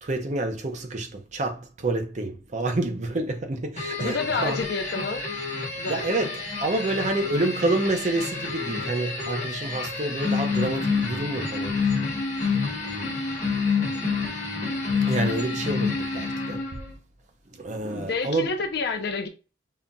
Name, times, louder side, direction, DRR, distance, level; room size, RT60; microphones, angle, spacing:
voice 1, 0.0-4.6 5.9-12.0 12.3-12.4 12.7-13.0 15.1-16.8 17.5-18.5, right 2 dB, 40° right, 0.6 m, -28 dB
sound 1, 3.8-16.9, left 4 dB, 40° left, 1.1 m, -28 dB
voice 2, 4.0-5.3 5.8-6.2 18.0-19.3, left 4 dB, 55° left, 0.5 m, -29 dB
5.5 x 2.5 x 2.2 m
head